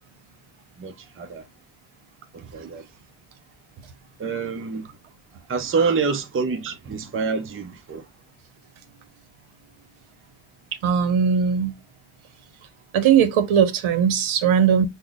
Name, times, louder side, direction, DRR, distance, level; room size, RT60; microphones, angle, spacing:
voice 1, 0.8-1.5 2.3-2.9 4.2-4.9 5.5-8.1, right 5 dB, 25° right, 0.6 m, -27 dB
voice 2, 10.8-11.7 12.9-14.9, right 7 dB, 75° right, 0.8 m, -19 dB
5.6 x 2.1 x 2.3 m
cardioid pair, 115°, 49 cm